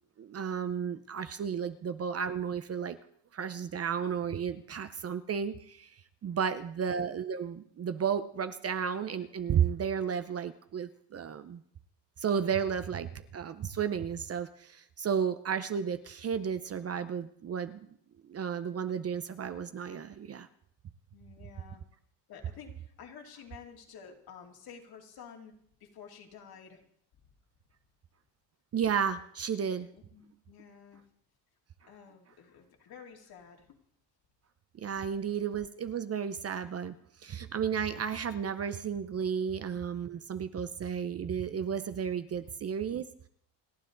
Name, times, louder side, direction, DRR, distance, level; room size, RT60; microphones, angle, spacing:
voice 1, 0.2-3.0 3.3-5.9 6.2-11.6 12.2-17.9 18.3-20.5 28.7-29.9 34.8-36.9 37.2-43.0, right 7 dB, 35° right, 10 dB, 0.7 m, -33 dB
voice 2, 6.3-6.7 21.1-21.8 22.3-25.5 25.8-26.8 29.9-31.0 31.8-33.8 35.0-35.1, left 7 dB, 55° left, 2 dB, 2.8 m, -51 dB
29.5 x 10.0 x 3.9 m, 0.66 s
cardioid pair, 145°, 45 cm